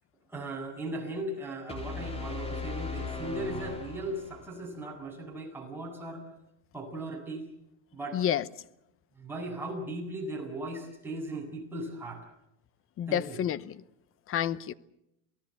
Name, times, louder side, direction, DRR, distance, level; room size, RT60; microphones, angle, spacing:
voice 1, 0.3-6.2 6.7-7.5 7.9-8.2 9.2-12.2 13.1-13.4, right 1 dB, 5° right, 7.5 m, -38 dB
sound 1, 1.7-4.6, left 3 dB, 15° left, 3.7 m, -37 dB
voice 2, 8.1-8.4 13.0-13.7 14.3-14.7, left 10 dB, 30° left, 0.8 m, -29 dB
28.0 x 18.5 x 8.0 m
supercardioid pair, 140°, 41 cm